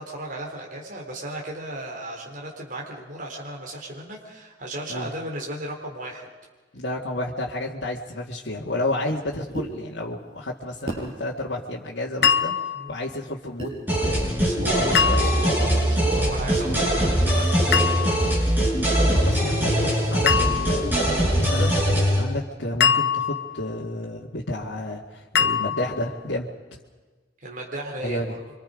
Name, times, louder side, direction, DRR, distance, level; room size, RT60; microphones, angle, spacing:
voice 1, 0.0-6.3 12.7-12.9 14.3-18.3 27.4-28.4, right 1 dB, 45° right, -1 dB, 3.8 m, -35 dB
voice 2, 6.7-12.6 12.9-14.3 14.7-15.5 19.1-21.7 22.2-26.5 28.0-28.3, left 1 dB, 80° left, -5 dB, 2.1 m, -31 dB
sound 1, 9.5-9.7 10.9-11.1 12.2-12.4 13.6-13.8, right 2 dB, 30° right, 6.9 m, -31 dB
sound 2, 12.2-12.9 14.9-15.7 17.7-18.4 20.3-20.9 22.8-23.7 25.4-26.1, left 7 dB, 60° left, 1.0 m, -23 dB
sound 3, 13.9-22.2, equal, 10° right, 6.5 m, -22 dB
26.5 x 25.0 x 5.2 m, 1.3 s
head